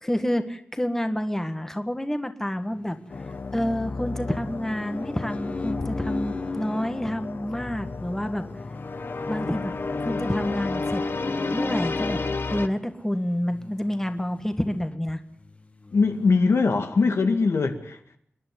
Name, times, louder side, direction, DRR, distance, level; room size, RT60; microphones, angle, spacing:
voice 1, 0.0-3.0 3.5-8.4 9.3-9.7 10.0-11.0 11.5-12.2 12.5-15.2, equal, 10° left, 1.7 m, -28 dB
sound 1, 2.8-4.0 4.5-6.9 7.5-12.5 13.4-14.6 14.9-15.0 15.4-16.3, left 3 dB, 30° left, 1.3 m, -38 dB
sound 2, 3.1-12.7, left 3 dB, 55° left, 1.3 m, -32 dB
voice 2, 15.9-18.0, left 4 dB, 80° left, 2.2 m, -21 dB
28.5 x 11.0 x 9.5 m
wide cardioid pair, 115°, 4 cm